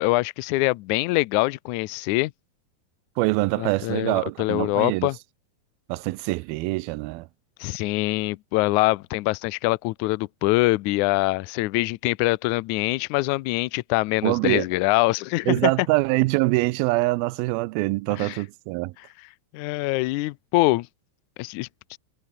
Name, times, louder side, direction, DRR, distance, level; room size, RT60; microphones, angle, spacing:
voice 1, 0.0-2.3 3.6-5.2 7.6-15.7 18.2-18.4 19.5-20.9 21.4-21.7, left 21 dB, 85° left, 1.7 m, -24 dB
voice 2, 3.2-5.1 5.9-7.3 14.2-14.7 15.5-18.9, right 22 dB, 90° right, 2.4 m, -24 dB
omnidirectional pair, 4.2 m